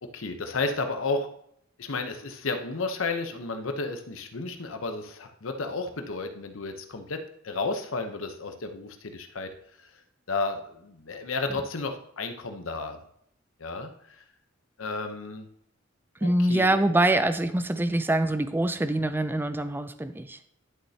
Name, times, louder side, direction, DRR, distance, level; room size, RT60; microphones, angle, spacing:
voice 1, 0.0-1.3 1.8-9.5 9.8-9.9 10.3-13.0 13.6-14.2 14.8-15.5 16.2-16.8, left 3 dB, 75° left, 7 dB, 0.9 m, -32 dB
voice 2, 16.2-20.4, right 1 dB, 10° right, 11 dB, 0.4 m, -24 dB
11.0 x 6.4 x 2.8 m, 0.69 s
head